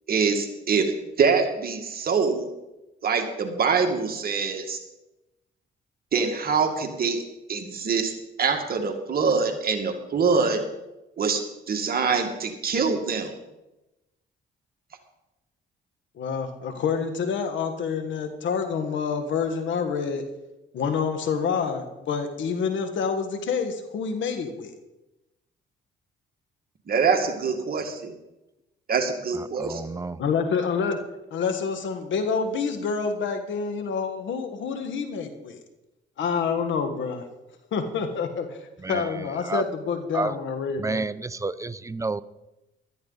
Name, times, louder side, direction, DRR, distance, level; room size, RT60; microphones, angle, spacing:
voice 1, 0.1-2.5 3.0-4.8 6.1-7.2 7.5-8.1 8.4-10.6 11.2-11.4 11.7-13.3 26.9-28.2 28.9-29.8, right 5 dB, 50° right, 4 dB, 2.0 m, -24 dB
voice 2, 16.1-20.2 20.7-24.7 30.2-31.0 31.3-35.6 36.2-37.3 37.7-41.1, left 6 dB, 70° left, 7 dB, 1.6 m, -27 dB
voice 3, 29.6-30.2 38.8-39.0 39.5-39.6 40.1-40.3 40.8-42.2, right 3 dB, 15° right, 14 dB, 0.6 m, -29 dB
15.5 x 12.5 x 4.1 m, 0.97 s
cardioid pair, 90°, 20 cm